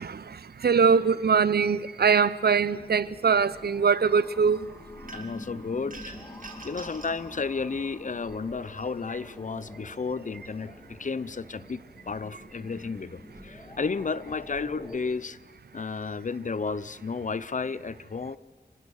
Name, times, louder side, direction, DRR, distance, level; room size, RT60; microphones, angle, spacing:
voice 1, 0.0-4.7, right 6 dB, 75° right, 0.7 m, -23 dB
sound 1, 2.5-15.0, left 1 dB, 25° left, 2.1 m, -47 dB
voice 2, 5.1-6.2 6.6-15.4 15.7-18.4, left 4 dB, 50° left, 0.6 m, -32 dB
sound 2, 5.1-5.5 5.9-7.2, right 3 dB, 55° right, 2.6 m, -44 dB
25.0 x 20.5 x 6.4 m
wide cardioid pair, 95°, 17 cm